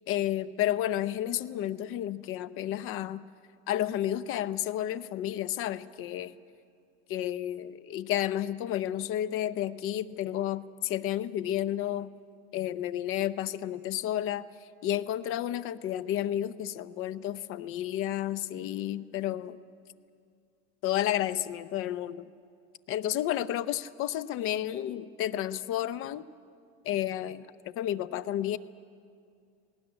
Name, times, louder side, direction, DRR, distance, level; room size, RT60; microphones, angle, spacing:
voice 1, 0.1-3.2 3.7-6.3 7.1-12.1 12.5-14.4 14.8-19.6 20.8-22.3 22.9-26.2 26.8-28.6, left 12 dB, 35° left, 16 dB, 0.7 m, -31 dB
19.5 x 18.0 x 9.7 m, 2.3 s
supercardioid pair, 135°, 36 cm